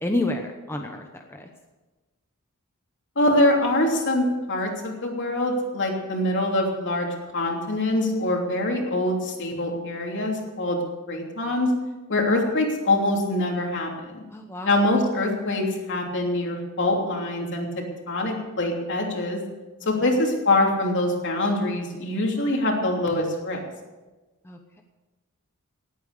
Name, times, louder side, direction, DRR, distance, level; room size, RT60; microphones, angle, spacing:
voice 1, 0.0-1.5 14.3-14.7 24.4-24.8, left 1 dB, 10° left, 3 dB, 1.0 m, -30 dB
voice 2, 3.1-10.8 11.1-11.7 12.1-14.2 14.6-19.4 19.8-23.6, left 1 dB, 55° left, 1 dB, 3.1 m, -24 dB
18.5 x 8.9 x 6.7 m, 1.2 s
head